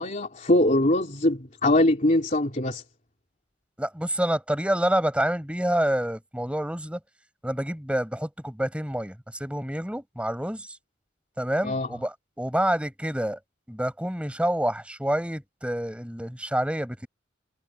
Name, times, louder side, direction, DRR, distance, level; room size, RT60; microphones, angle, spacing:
voice 1, 0.0-2.8 11.6-11.9, left 1 dB, 40° left, 3.3 m, -22 dB
voice 2, 3.8-7.0 7.4-10.7 11.4-13.4 13.7-17.1, right 1 dB, 5° right, 4.6 m, -27 dB
head